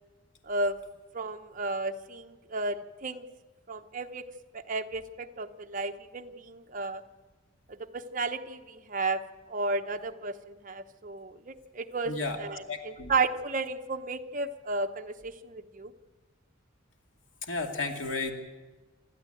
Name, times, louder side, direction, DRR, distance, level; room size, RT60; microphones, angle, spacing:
voice 1, 1.1-3.3 3.7-4.2 4.5-7.0 7.8-9.2 9.5-15.9, right 3 dB, 40° right, 6 dB, 1.0 m, -33 dB
voice 2, 12.1-13.1 17.4-18.3, left 3 dB, 70° left, 3 dB, 2.5 m, -33 dB
27.5 x 12.0 x 9.2 m, 1.3 s
head